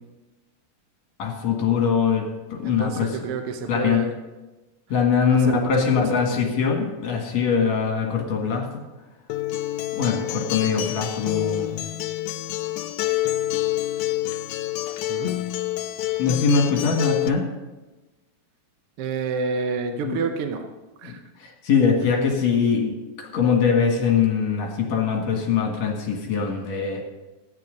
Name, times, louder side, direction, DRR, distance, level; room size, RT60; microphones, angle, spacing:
voice 1, 1.2-3.2 3.7-4.0 4.9-8.7 9.9-11.8 16.2-17.5 20.0-20.2 21.0-21.1 21.4-27.0, left 6 dB, 65° left, 1 dB, 3.0 m, -22 dB
voice 2, 2.6-4.1 5.3-5.7 6.4-6.5 15.1-15.4 19.0-20.7 21.0-21.2, right 4 dB, 65° right, 4 dB, 1.5 m, -28 dB
Acoustic guitar, 9.3-17.3, left 15 dB, 85° left, 2.0 m, -27 dB
14.0 x 9.5 x 5.2 m, 1.2 s
omnidirectional pair, 3.4 m